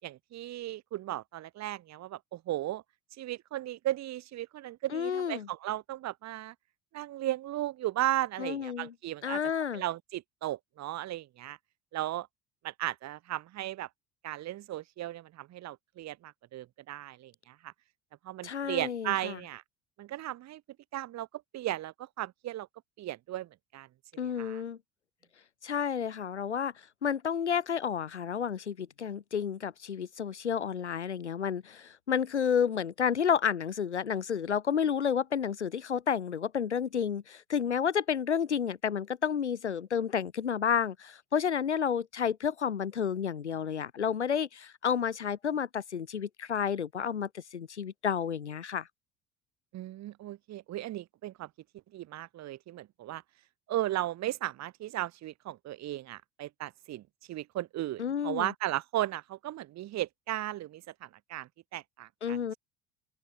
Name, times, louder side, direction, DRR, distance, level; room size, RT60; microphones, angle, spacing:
voice 1, 0.0-2.8 3.2-6.5 6.9-9.4 9.7-11.6 11.9-12.3 12.6-13.9 14.2-17.7 18.2-19.6 20.0-20.6 20.9-21.3 21.5-22.7 23.0-23.9 24.1-24.6 49.7-51.5 51.9-53.2 53.7-62.4, right 14 dB, 50° right, 5.8 m, -36 dB
voice 2, 4.9-5.5 8.4-8.9 9.2-9.8 18.4-19.4 24.2-24.8 25.6-26.7 27.0-48.9 58.0-58.5 62.2-62.5, left 7 dB, 85° left, 2.0 m, -31 dB
open air
figure-of-eight pair, 60°, 34 cm